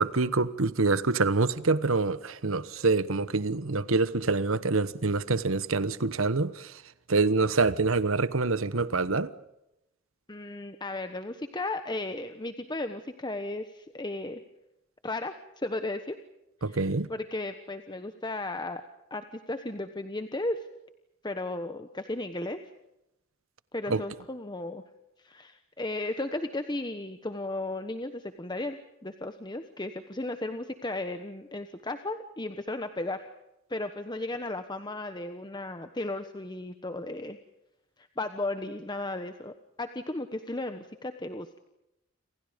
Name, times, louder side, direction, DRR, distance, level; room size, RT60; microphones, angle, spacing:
voice 1, 0.0-6.7 7.1-9.3 16.6-17.1 23.9-24.0, right 3 dB, 75° right, 1.2 m, -26 dB
voice 2, 10.3-14.4 15.0-16.2 16.6-18.8 19.1-20.6 21.2-22.6 23.7-24.8 25.2-28.8 29.0-33.3 33.7-37.4 38.0-41.6, left 2 dB, 20° left, 1.2 m, -35 dB
29.5 x 27.0 x 5.2 m
head